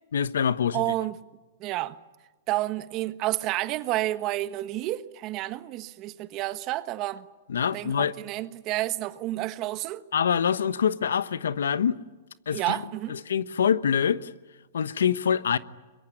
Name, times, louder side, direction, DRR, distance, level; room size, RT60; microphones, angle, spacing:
voice 1, 0.1-0.8 7.5-8.1 10.1-12.0 12.5-12.8 13.1-14.3 14.7-15.6, left 7 dB, 85° left, 1.1 m, -25 dB
voice 2, 0.7-1.2 1.6-2.0 2.5-7.3 7.7-10.1 12.5-13.2, right 16 dB, 35° right, 1.2 m, -30 dB
22.5 x 22.5 x 9.9 m
hypercardioid pair, 135°, 0 cm